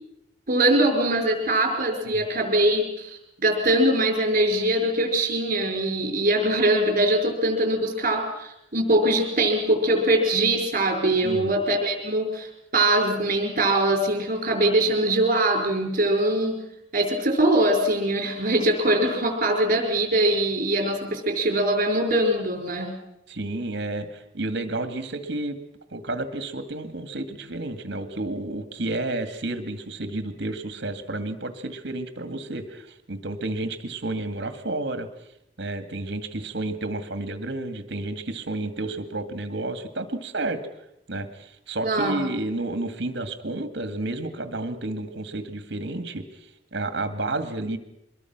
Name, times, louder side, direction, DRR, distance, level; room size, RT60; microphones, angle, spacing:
voice 1, 0.5-12.5 12.7-16.6 16.9-22.9 41.8-42.2, right 1 dB, 45° right, 4 dB, 5.4 m, -22 dB
voice 2, 11.2-11.6 23.3-25.6 25.9-35.1 35.6-40.6 41.1-46.2 46.7-47.8, right 2 dB, 65° right, 9 dB, 2.1 m, -31 dB
25.0 x 21.5 x 6.1 m, 0.81 s
head